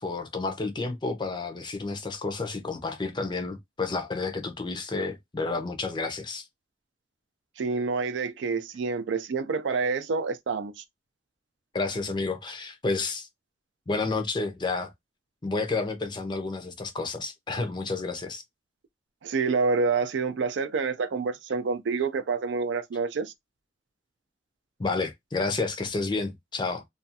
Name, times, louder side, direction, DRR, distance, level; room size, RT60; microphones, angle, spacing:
voice 1, 0.0-6.5 11.7-13.3 13.9-14.9 15.4-18.4 24.8-26.8, left 3 dB, 25° left, 0.5 m, -30 dB
voice 2, 7.6-10.8 19.2-23.3, right 4 dB, 90° right, 0.4 m, -28 dB
2.4 x 2.3 x 2.7 m
head